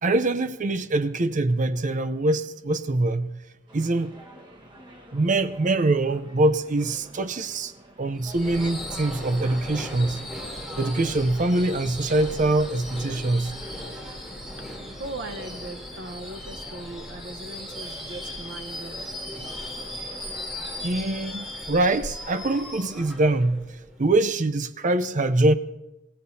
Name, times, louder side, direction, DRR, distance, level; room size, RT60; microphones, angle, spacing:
voice 1, 0.0-3.4 3.7-4.1 5.1-7.7 8.0-10.2 10.8-13.5 20.8-23.7 24.0-25.5, right 2 dB, 40° right, 0.6 m, -24 dB
sound 1, 3.7-20.9, right 1 dB, 25° right, 1.4 m, -49 dB
Subway metro underground / Screech, 8.2-24.1, left 1 dB, ahead, 3.1 m, -37 dB
voice 2, 13.7-14.3 14.6-19.2, right 2 dB, 60° right, 1.0 m, -40 dB
27.0 x 16.5 x 2.7 m
head